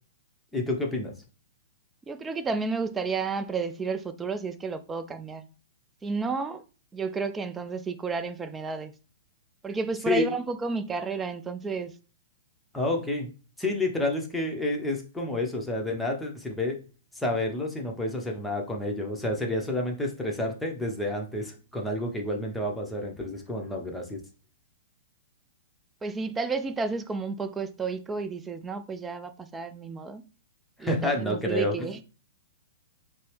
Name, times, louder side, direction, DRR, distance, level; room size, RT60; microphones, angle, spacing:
voice 1, 0.5-1.1 10.1-10.3 12.7-13.3 13.6-16.8 17.1-24.2 30.8-32.0, left 1 dB, 5° left, 0.9 m, -29 dB
voice 2, 2.1-5.5 6.0-6.6 6.9-8.9 9.6-11.9 26.0-30.2 30.8-32.0, right 4 dB, 15° right, 0.4 m, -31 dB
5.2 x 2.1 x 3.3 m
figure-of-eight pair, 110°, 0 cm